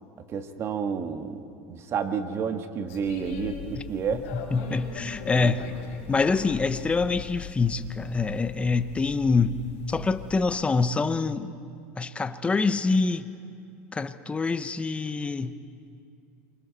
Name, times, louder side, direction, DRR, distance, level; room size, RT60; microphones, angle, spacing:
voice 1, 0.3-1.4 1.7-3.5 3.9-4.2 5.3-5.5, right 6 dB, 40° right, 1.6 m, -30 dB
sound 1, 2.9-10.6, left 5 dB, 80° left, 4.6 m, -40 dB
voice 2, 4.3-5.6 6.1-9.6 9.9-11.5 12.0-13.3 13.9-15.6, left 4 dB, 15° left, 0.9 m, -25 dB
28.5 x 25.0 x 4.1 m
supercardioid pair, 115°, 7 cm